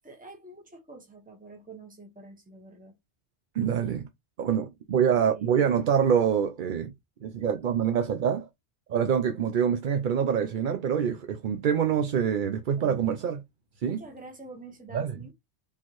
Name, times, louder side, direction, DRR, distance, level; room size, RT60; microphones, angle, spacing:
voice 1, 0.0-2.9 5.1-5.6 12.8-13.2 13.8-15.3, right 2 dB, 10° right, 1.3 m, -47 dB
voice 2, 3.5-4.1 4.4-6.9 7.2-8.5 8.9-13.4 13.8-14.0 14.9-15.1, right 8 dB, 55° right, 0.6 m, -25 dB
4.4 x 3.7 x 3.0 m
omnidirectional pair, 1.1 m